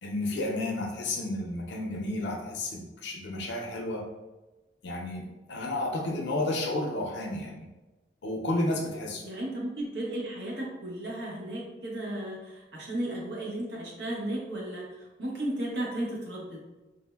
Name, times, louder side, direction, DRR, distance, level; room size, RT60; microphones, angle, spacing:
voice 1, 0.0-4.0 4.8-7.7 8.2-9.2, left 1 dB, 80° left, 1 dB, 0.5 m, -32 dB
voice 2, 9.2-14.9 15.2-16.6, right 1 dB, 70° right, -3 dB, 0.8 m, -34 dB
3.4 x 2.1 x 2.2 m, 1.1 s
head